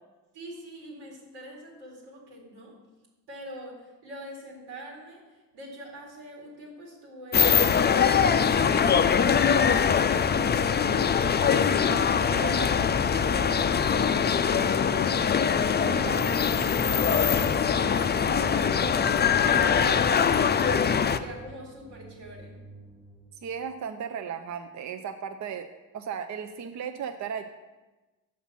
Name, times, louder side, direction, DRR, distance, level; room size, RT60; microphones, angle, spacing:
voice 1, 0.3-2.7 3.3-5.2 5.5-10.1 10.5-11.7 12.2-15.5 15.9-20.9 21.2-22.5, equal, 85° right, -1 dB, 2.3 m, -44 dB
sound 1, 7.3-21.2, left 7 dB, 25° left, 0.4 m, -23 dB
sound 2, 15.8-23.7, right 1 dB, 5° right, 1.2 m, -49 dB
voice 2, 23.3-25.7 25.9-27.4, right 7 dB, 45° right, 8 dB, 0.6 m, -35 dB
6.2 x 5.8 x 5.7 m, 1.1 s
supercardioid pair, 55°, 40 cm